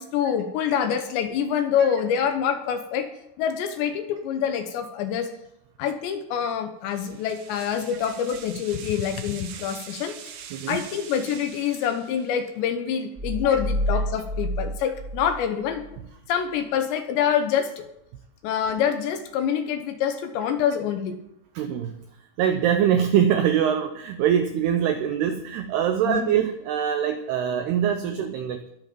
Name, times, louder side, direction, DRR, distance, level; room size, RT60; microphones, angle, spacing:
voice 1, 0.0-3.1 3.4-5.3 5.8-10.2 10.7-15.8 16.3-17.8 18.4-21.2 26.1-26.3 28.1-28.2, left 8 dB, 75° left, 7 dB, 2.9 m, -26 dB
sound 1, 6.9-12.5, right 8 dB, 75° right, 3.6 m, -43 dB
sound 2, 13.1-16.0, equal, 15° right, 1.8 m, -29 dB
voice 2, 21.6-21.9 22.4-28.6, right 9 dB, 90° right, 7 dB, 2.3 m, -23 dB
21.5 x 8.0 x 5.3 m, 0.80 s
omnidirectional pair, 5.8 m